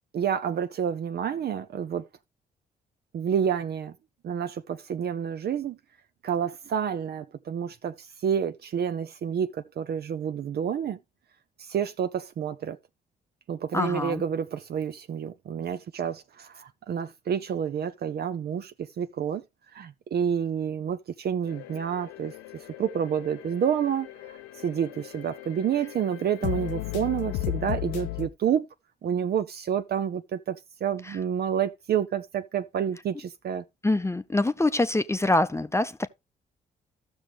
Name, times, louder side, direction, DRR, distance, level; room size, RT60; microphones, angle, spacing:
voice 1, 0.1-2.1 3.1-3.9 4.2-5.8 6.2-11.0 11.6-12.8 13.5-19.4 19.7-28.7 29.0-33.6, right 8 dB, 55° right, 0.6 m, -29 dB
voice 2, 13.7-14.2 31.0-31.2 33.8-36.1, left 2 dB, 15° left, 0.6 m, -25 dB
sound 1, 21.5-28.3, left 16 dB, 90° left, 0.7 m, -36 dB
14.0 x 6.2 x 3.0 m
supercardioid pair, 50°, 19 cm